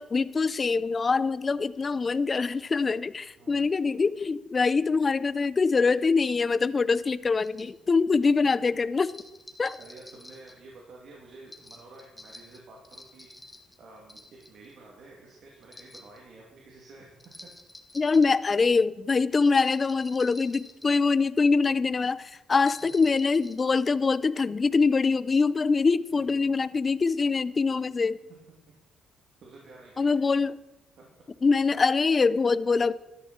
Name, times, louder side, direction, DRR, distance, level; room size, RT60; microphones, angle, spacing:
voice 1, 0.0-9.1 9.6-9.8 17.9-28.2 30.0-30.6 31.4-32.9, left 4 dB, 35° left, 17 dB, 0.5 m, -24 dB
sound 1, 7.4-7.7 9.0-10.5 11.5-13.8 14.1-14.7 15.6-16.2 17.2-18.4 19.4-21.1 22.5-23.7, left 2 dB, 15° left, 1.6 m, -48 dB
voice 2, 9.8-13.5 13.8-17.3 26.1-26.4 29.4-30.3 31.0-31.1, right 3 dB, 65° right, -2 dB, 2.8 m, -50 dB
13.0 x 13.0 x 4.4 m, 1.0 s
cardioid pair, 90°, 0 cm